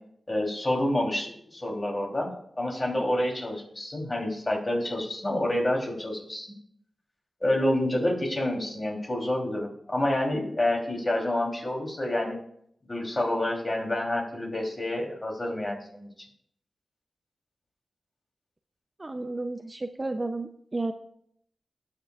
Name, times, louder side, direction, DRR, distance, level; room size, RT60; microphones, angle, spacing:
voice 1, 0.3-6.5 7.4-12.4 12.9-16.1, left 1 dB, 30° left, -1 dB, 3.1 m, -28 dB
voice 2, 19.0-20.9, right 2 dB, 30° right, 8 dB, 0.5 m, -32 dB
18.0 x 6.6 x 2.4 m, 0.67 s
wide cardioid pair, 80°, 0 cm